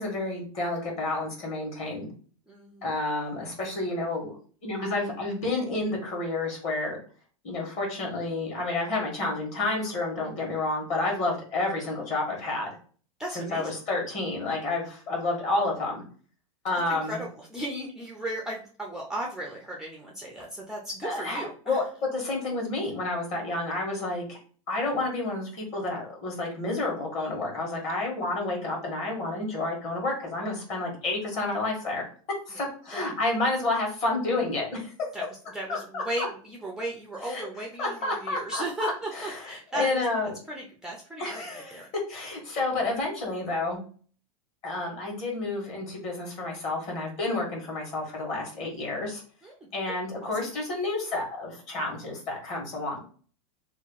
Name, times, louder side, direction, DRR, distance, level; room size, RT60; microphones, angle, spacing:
voice 1, 0.0-2.1 2.8-4.4 4.6-7.0 7.4-12.7 13.3-16.0 16.6-17.2 21.0-21.8 22.1-24.4 24.7-32.0 32.5-34.9 35.7-36.3 37.2-37.4 37.8-40.3 41.2-41.8 42.1-43.8 44.6-49.2 49.7-53.0, left 2 dB, 35° left, -1 dB, 1.5 m, -30 dB
voice 2, 2.5-2.9 13.2-13.8 16.9-21.8 32.5-32.6 32.9-33.0 35.1-41.9 49.4-49.5 50.4-50.5, right 1 dB, 5° right, -1 dB, 0.4 m, -36 dB
2.9 x 2.3 x 3.8 m, 0.42 s
supercardioid pair, 140°, 19 cm